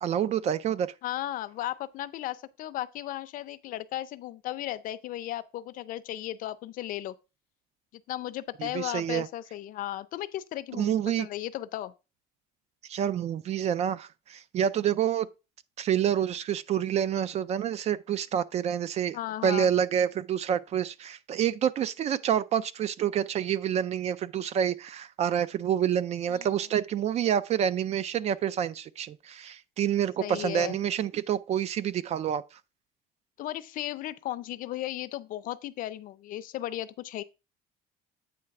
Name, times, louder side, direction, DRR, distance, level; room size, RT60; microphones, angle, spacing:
voice 1, 0.0-0.9 8.6-9.3 10.7-11.3 12.9-15.3 15.8-19.2 19.4-32.4, right 9 dB, 40° right, 0.4 m, -28 dB
voice 2, 1.0-7.1 8.1-11.9 19.1-19.7 26.3-26.5 30.2-30.8 33.4-37.2, left 14 dB, 55° left, 0.5 m, -35 dB
8.6 x 3.2 x 5.8 m
cardioid pair, 155°, 17 cm